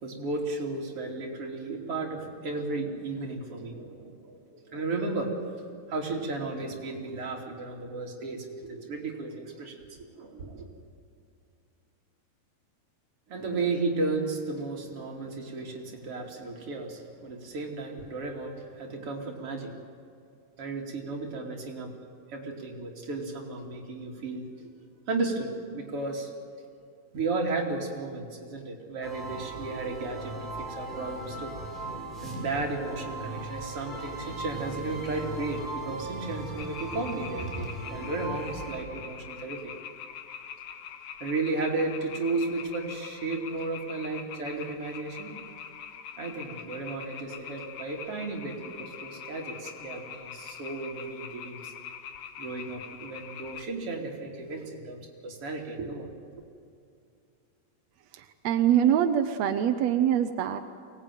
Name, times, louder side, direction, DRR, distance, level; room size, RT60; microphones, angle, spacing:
voice 1, 0.0-5.3 5.9-10.7 13.3-19.7 20.6-21.9 22.3-24.7 25.1-26.3 27.1-31.6 32.2-39.7 41.2-45.3 46.2-51.7 52.4-56.1, right 3 dB, 40° right, 0 dB, 3.7 m, -34 dB
sound 1, 29.0-38.7, right 2 dB, ahead, 6.7 m, -38 dB
sound 2, 36.6-53.7, left 8 dB, 65° left, 2.0 m, -43 dB
voice 2, 58.1-60.6, right 10 dB, 75° right, 7 dB, 1.6 m, -24 dB
24.0 x 19.0 x 9.4 m, 2.4 s
omnidirectional pair, 4.1 m